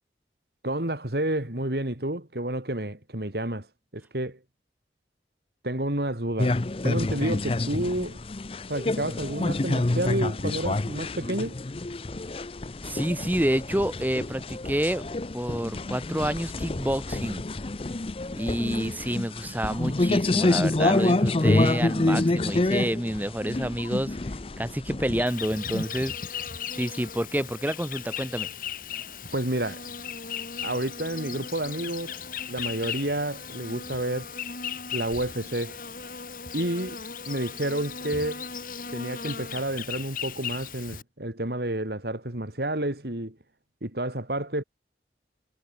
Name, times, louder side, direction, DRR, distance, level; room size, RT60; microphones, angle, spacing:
voice 1, 0.6-3.7 3.9-4.4 5.6-6.6 6.8-8.2 8.7-11.6 29.3-29.8 30.6-32.1 32.5-34.3 34.9-35.8 36.5-38.4 38.9-43.4 43.8-44.6, right 1 dB, 60° right, 2.7 m, -30 dB
sound 1, 6.4-25.3, left 2 dB, 30° left, 0.6 m, -27 dB
voice 2, 12.8-15.1 15.3-17.5 18.3-26.5 26.7-28.5, right 1 dB, 10° right, 1.1 m, -29 dB
Insect, 25.3-41.0, left 7 dB, 50° left, 6.7 m, -37 dB
head